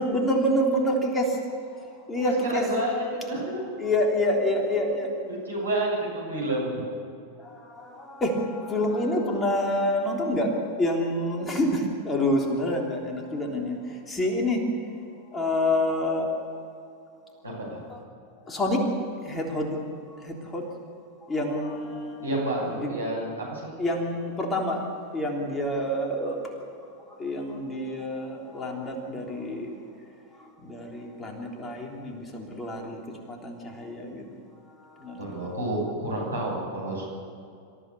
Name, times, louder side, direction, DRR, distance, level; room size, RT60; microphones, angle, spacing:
voice 1, 0.0-1.4 1.7-2.7 3.8-5.1 7.4-10.5 10.8-14.6 15.3-16.3 17.9-18.0 18.5-18.9 19.2-19.8 20.1-20.6 21.3-22.3 22.6-22.9 23.8-26.4 27.1-29.8 30.6-33.0 33.3-34.3 34.8-35.5, left 1 dB, 15° left, 0 dB, 3.4 m, -27 dB
voice 2, 2.2-3.6 5.3-6.8 17.4-17.8 22.2-23.7 35.2-37.1, right 1 dB, 80° right, -3 dB, 7.4 m, -30 dB
26.5 x 15.0 x 7.0 m, 2.4 s
figure-of-eight pair, 90°, 0 cm